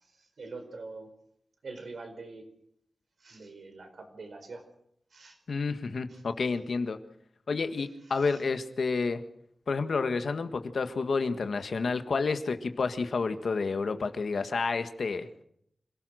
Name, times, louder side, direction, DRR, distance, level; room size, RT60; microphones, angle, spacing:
voice 1, 0.4-1.1 1.6-2.4 3.2-4.6 5.1-5.4 8.3-8.4, right 3 dB, 70° right, 6 dB, 4.5 m, -43 dB
voice 2, 5.5-7.0 7.5-9.2 9.7-15.4, left 4 dB, 70° left, 8 dB, 1.6 m, -30 dB
26.0 x 18.0 x 6.4 m, 0.71 s
wide cardioid pair, 130°, 0 cm